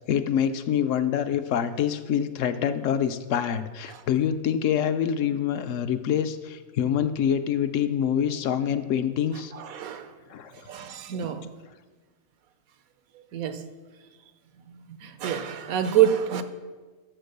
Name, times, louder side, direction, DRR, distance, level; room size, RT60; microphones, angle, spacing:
voice 1, 0.1-9.5 10.3-10.5, left 9 dB, 70° left, 10 dB, 0.9 m, -26 dB
voice 2, 9.5-10.1 10.5-11.5 13.3-13.6 14.9-16.4, right 10 dB, 85° right, 10 dB, 1.2 m, -26 dB
12.5 x 4.4 x 6.6 m, 1.4 s
omnidirectional pair, 1.5 m